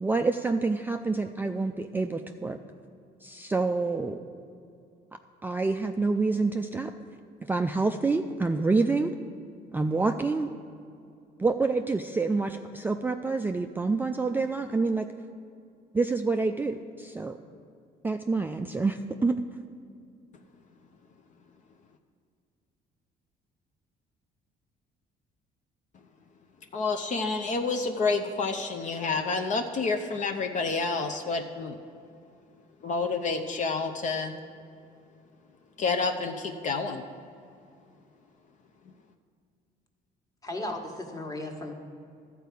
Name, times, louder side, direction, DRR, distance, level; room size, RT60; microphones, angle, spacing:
voice 1, 0.0-2.6 3.2-4.2 5.4-6.9 7.5-9.1 9.7-10.5 11.4-15.1 15.9-17.3 18.0-19.4, right 3 dB, 10° right, 5 dB, 0.3 m, -27 dB
voice 2, 26.7-31.7 32.8-34.3 35.8-37.0, left 4 dB, 45° left, 4 dB, 0.7 m, -29 dB
voice 3, 40.4-41.7, left 1 dB, 20° left, 2 dB, 1.4 m, -35 dB
12.5 x 4.6 x 8.1 m, 2.5 s
cardioid pair, 110°, 17 cm